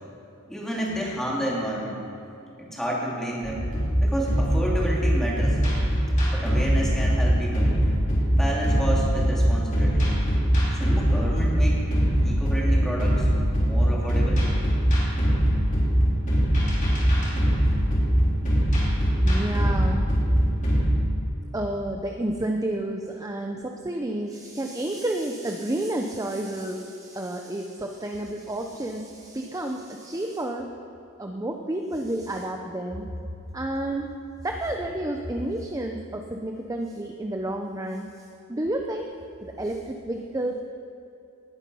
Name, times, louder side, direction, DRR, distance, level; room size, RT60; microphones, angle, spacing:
voice 1, 0.5-2.0 2.6-3.7 4.0-5.6 6.3-7.7 8.3-10.1 10.7-11.8 12.2-13.3 13.6-14.4, right 1 dB, ahead, -5 dB, 2.9 m, -30 dB
sound 1, 3.4-20.9, equal, 35° left, 4.4 m, -22 dB
voice 2, 19.2-20.1 21.5-30.7 31.2-33.1 33.5-34.1 34.4-38.1 38.5-39.1 39.4-40.6, right 1 dB, 15° right, 3 dB, 0.7 m, -30 dB
19.5 x 9.6 x 5.6 m, 2.8 s
head